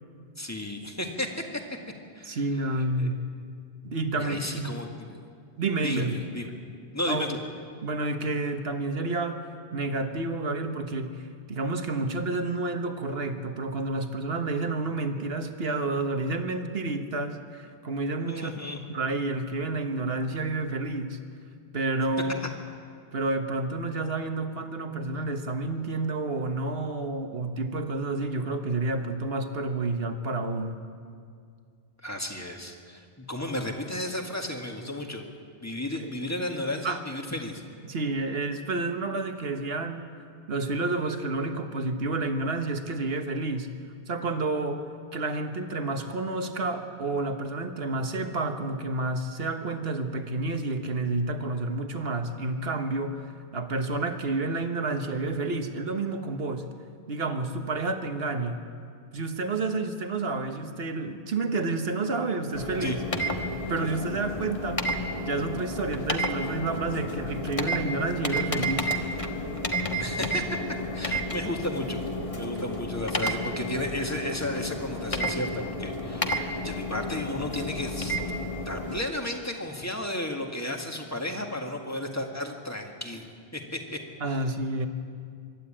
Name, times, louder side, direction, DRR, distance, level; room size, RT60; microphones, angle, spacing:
voice 1, 0.4-1.6 2.1-2.4 2.7-3.1 4.2-5.2 5.8-6.5 6.9-7.4 18.3-18.8 32.0-35.3 35.6-37.6 62.8-63.0 70.0-70.6 70.9-72.0 72.4-78.2 78.7-84.0 84.3-84.4, left 1 dB, 15° left, 2 dB, 1.9 m, -33 dB
voice 2, 2.2-3.2 3.8-4.8 5.6-6.1 7.1-7.2 7.8-18.5 18.9-21.2 21.7-22.4 23.1-30.8 36.0-36.1 36.8-37.0 37.9-40.1 40.5-43.7 44.1-44.8 45.1-53.3 53.5-56.7 57.1-58.6 59.1-63.0 63.7-64.9 65.2-68.9 84.2-84.9, right 3 dB, 70° right, 7 dB, 1.5 m, -30 dB
sound 1, 62.5-79.0, equal, 35° left, 1.3 m, -31 dB
24.0 x 12.0 x 8.8 m, 2.2 s
omnidirectional pair, 1.0 m